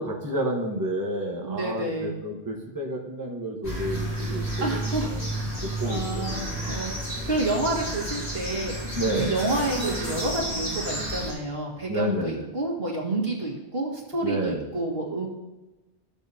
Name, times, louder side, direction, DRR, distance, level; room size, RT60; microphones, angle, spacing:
voice 1, 0.0-5.2 5.6-6.2 8.9-9.4 11.9-12.5 14.2-14.7, right 1 dB, 20° right, -1 dB, 1.0 m, -30 dB
voice 2, 1.4-2.2 4.6-5.1 5.8-8.7 9.2-15.3, right 2 dB, 60° right, -2 dB, 2.1 m, -29 dB
sound 1, 3.6-11.3, right 1 dB, 65° left, 4.1 m, -31 dB
14.0 x 7.0 x 2.8 m, 1.1 s
omnidirectional pair, 1.2 m